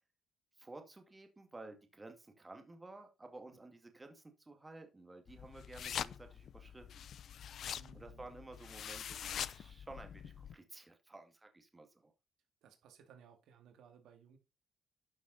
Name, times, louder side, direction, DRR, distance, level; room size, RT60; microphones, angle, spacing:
voice 1, 0.6-7.1 7.9-12.1, right 2 dB, 20° right, 5 dB, 2.2 m, -53 dB
sound 1, 5.3-10.5, left 9 dB, 65° left, 0.4 m, -44 dB
voice 2, 7.6-8.3 12.6-14.4, right 7 dB, 80° right, 6 dB, 2.2 m, -61 dB
12.0 x 6.2 x 4.0 m, 0.27 s
cardioid pair, 90°, 0 cm